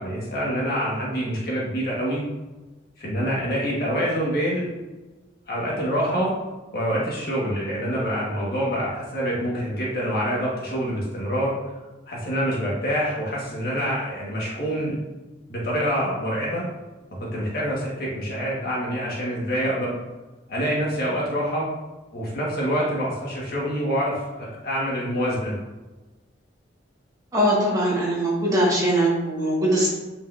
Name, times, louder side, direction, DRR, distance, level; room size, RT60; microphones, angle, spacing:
voice 1, 0.0-2.2 3.0-4.7 5.5-6.3 6.7-11.5 12.1-15.0 15.5-16.7 17.2-20.0 20.5-21.7 22.1-25.6, equal, 55° left, -5 dB, 1.9 m, -26 dB
voice 2, 27.3-29.9, right 1 dB, 20° right, -6 dB, 2.1 m, -21 dB
7.7 x 5.4 x 2.8 m, 1.2 s
head